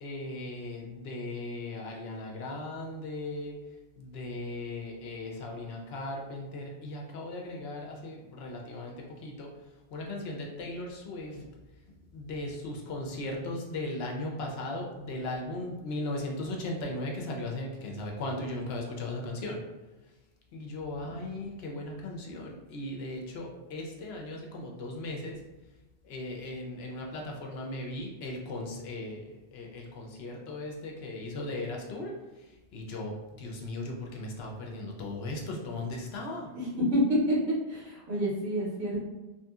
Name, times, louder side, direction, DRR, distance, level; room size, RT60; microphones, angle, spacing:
voice 1, 0.0-3.5 4.0-9.5 9.9-11.5 12.1-19.6 20.5-25.4 26.0-36.5, left 2 dB, 65° left, 0 dB, 0.8 m, -37 dB
voice 2, 36.5-37.3 37.7-39.0, equal, 80° right, -7 dB, 1.3 m, -28 dB
2.9 x 2.7 x 2.3 m, 1.1 s
omnidirectional pair, 1.2 m